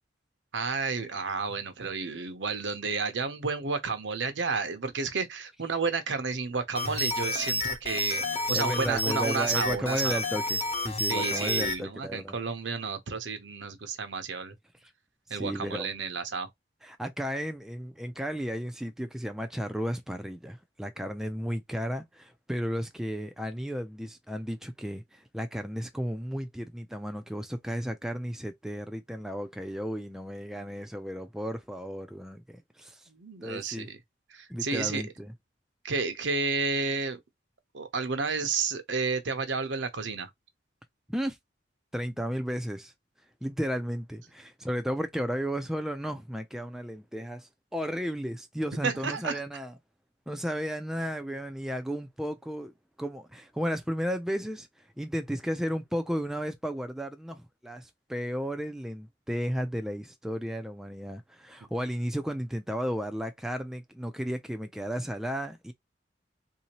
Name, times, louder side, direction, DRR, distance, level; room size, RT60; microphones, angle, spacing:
voice 1, 0.5-10.2 11.1-14.5 15.3-16.5 33.1-34.0 34.3-35.0 35.8-37.2 37.7-40.3 48.8-49.4, right 4 dB, 75° right, 0.8 m, -31 dB
sound 1, 6.7-11.8, left 1 dB, 35° left, 1.0 m, -30 dB
voice 2, 8.5-12.4 14.8-14.9 15.3-15.9 16.8-33.1 33.4-33.9 34.5-35.3 41.1-41.4 41.9-42.9 43.4-49.7 50.3-52.7 53.0-54.7 55.0-65.7, equal, ahead, 0.4 m, -34 dB
3.7 x 2.8 x 2.9 m
head